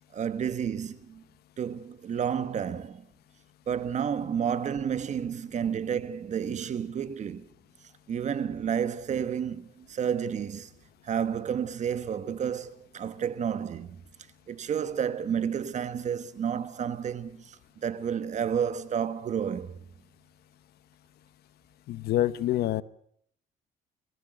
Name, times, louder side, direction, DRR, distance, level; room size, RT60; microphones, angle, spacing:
voice 1, 0.1-1.2 1.6-3.0 3.7-7.5 8.1-10.7 11.0-14.0 14.5-19.8, right 8 dB, 45° right, 1.4 m, -31 dB
voice 2, 21.9-22.8, left 13 dB, 70° left, 1.0 m, -26 dB
25.0 x 15.5 x 7.8 m
cardioid pair, 110°, 17 cm